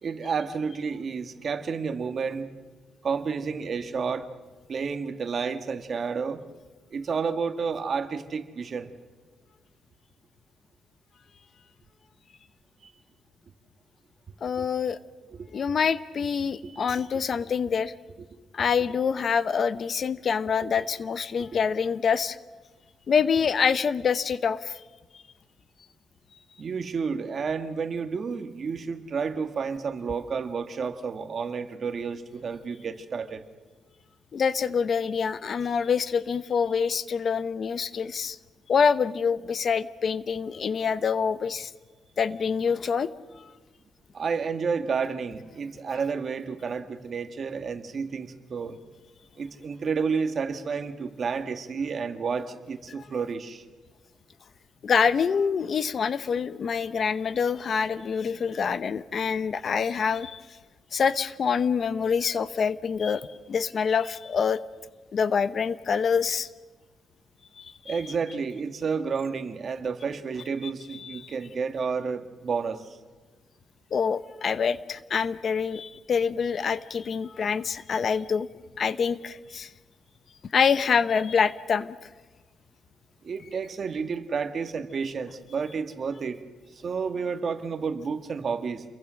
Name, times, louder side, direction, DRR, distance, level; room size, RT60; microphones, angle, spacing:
voice 1, 0.0-2.5 3.0-4.3 4.7-6.4 6.9-8.9 12.8-12.9 14.6-14.7 15.4-15.5 16.6-16.8 26.6-33.4 44.1-48.8 49.4-53.6 67.9-73.0 83.2-86.4 86.8-88.8, right 5 dB, 45° right, 8 dB, 1.8 m, -30 dB
voice 2, 14.4-15.0 15.5-17.9 18.5-22.4 23.1-24.8 34.3-38.4 38.7-41.7 42.2-43.1 54.8-60.4 60.9-64.6 65.1-66.5 67.6-67.7 70.9-71.3 73.9-78.5 78.8-79.7 80.5-82.1, left 6 dB, 45° left, 15 dB, 0.9 m, -26 dB
28.5 x 22.5 x 6.4 m, 1.3 s
cardioid pair, 125°, 0 cm